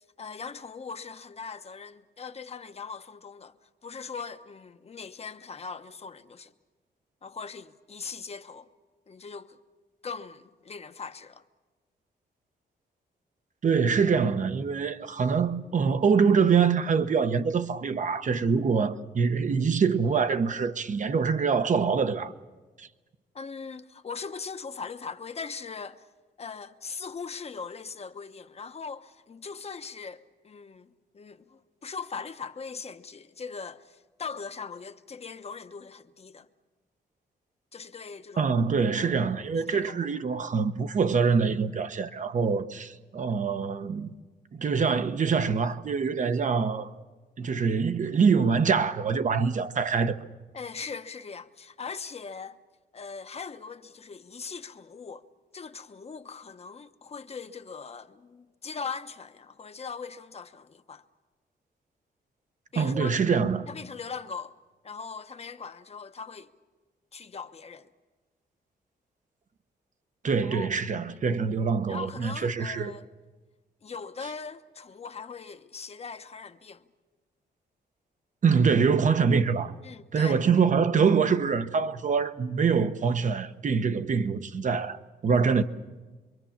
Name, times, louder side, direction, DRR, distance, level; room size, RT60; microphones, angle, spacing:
voice 1, 0.2-3.6 3.8-6.5 7.2-8.7 9.1-9.6 10.0-11.4 23.3-26.1 26.4-36.5 37.7-38.5 38.9-39.2 39.5-40.2 50.5-52.6 52.9-55.3 55.5-61.0 62.7-64.6 64.8-66.5 67.1-67.9 70.4-70.7 71.0-71.4 71.9-73.1 73.8-76.9 79.8-80.4, left 5 dB, 35° left, 1.0 m, -40 dB
voice 2, 13.6-22.3 22.8-22.9 38.4-44.1 44.5-46.9 47.4-50.2 62.8-63.7 70.2-72.9 78.4-79.7 80.1-85.6, right 5 dB, 45° right, 1.0 m, -25 dB
26.0 x 23.5 x 7.3 m
cardioid pair, 115°, 17 cm